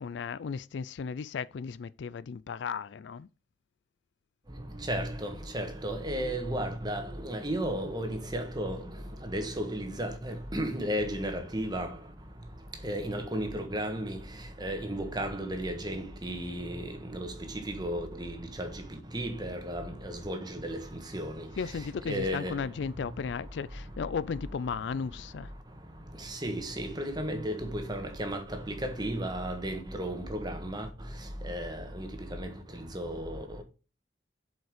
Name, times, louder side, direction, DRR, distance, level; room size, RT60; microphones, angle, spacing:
voice 1, 0.0-3.3 21.6-25.5, left 6 dB, 75° left, 0.4 m, -35 dB
voice 2, 4.9-8.8 9.2-11.9 12.8-14.2 14.6-16.8 17.1-17.3 17.7-18.8 19.1-21.5 22.1-22.6 26.3-30.9 31.4-32.1 32.4-32.5 32.9-33.4, right 1 dB, 20° right, 1.5 m, -34 dB
7.6 x 5.2 x 5.0 m
head